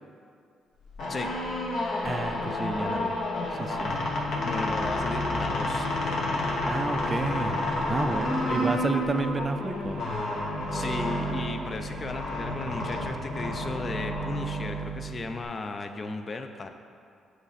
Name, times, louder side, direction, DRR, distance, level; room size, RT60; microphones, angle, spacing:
sound 1, 0.8-15.4, left 1 dB, 65° left, 1.1 m, -30 dB
sound 2, 1.2-10.0, left 5 dB, 85° left, 0.7 m, -37 dB
voice 1, 2.0-3.2 3.5-3.9 6.6-7.6 7.9-10.0, right 3 dB, 25° right, 8 dB, 0.4 m, -31 dB
voice 2, 4.2-5.9 8.4-8.8 10.7-16.7, left 3 dB, 35° left, 7 dB, 0.4 m, -35 dB
sound 3, 8.2-13.7, right 3 dB, 85° right, 0.6 m, -47 dB
7.9 x 3.2 x 4.1 m, 2.4 s
cardioid pair, 90°, 0 cm